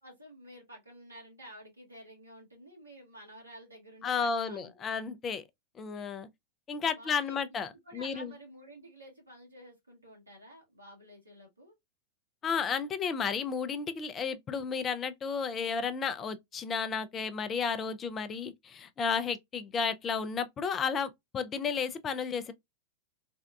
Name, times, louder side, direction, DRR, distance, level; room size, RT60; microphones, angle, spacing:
voice 1, 0.0-4.8 6.9-11.7, equal, 80° right, 1.6 m, -51 dB
voice 2, 4.0-5.4 5.8-6.3 6.7-8.3 12.4-22.5, left 6 dB, 25° left, 0.4 m, -33 dB
3.5 x 2.2 x 2.3 m
figure-of-eight pair, 90°, 0 cm